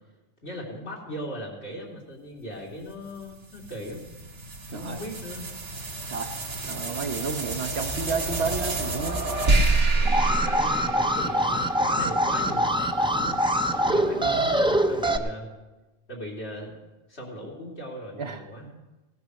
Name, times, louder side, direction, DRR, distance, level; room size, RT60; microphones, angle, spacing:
voice 1, 0.4-4.0 4.7-5.5 9.9-13.4 13.7-15.5 16.1-16.7 17.1-18.6, equal, 70° left, -3 dB, 3.3 m, -38 dB
sound 1, 3.0-11.6, right 2 dB, 85° right, 1.8 m, -28 dB
voice 2, 6.6-9.2 10.5-10.6 14.0-14.8 18.2-18.8, right 5 dB, 65° right, 5 dB, 1.2 m, -32 dB
Alarm, 10.0-15.2, equal, 5° right, 0.4 m, -24 dB
17.5 x 9.4 x 6.4 m, 1.1 s
omnidirectional pair, 1.2 m